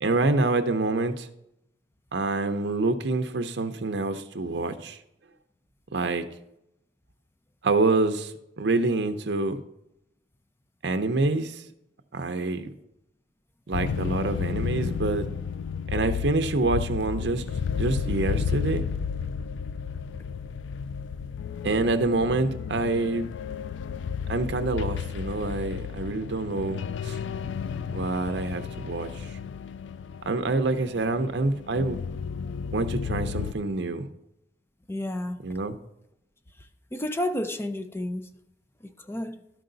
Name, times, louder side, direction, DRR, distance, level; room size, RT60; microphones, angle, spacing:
voice 1, 0.0-1.3 2.1-5.0 5.9-6.3 7.6-9.6 10.8-11.6 12.1-12.7 13.7-15.3 15.9-17.4 17.7-18.9 21.6-23.3 24.3-27.2 27.9-29.3 30.2-32.0 32.7-34.1 35.4-35.8, right 3 dB, 65° right, 0.6 m, -26 dB
sound 1, 13.7-33.5, left 6 dB, 85° left, 0.3 m, -32 dB
voice 2, 34.9-35.4 36.9-38.3 38.8-39.4, left 1 dB, 15° left, 0.5 m, -31 dB
12.5 x 4.7 x 3.9 m
head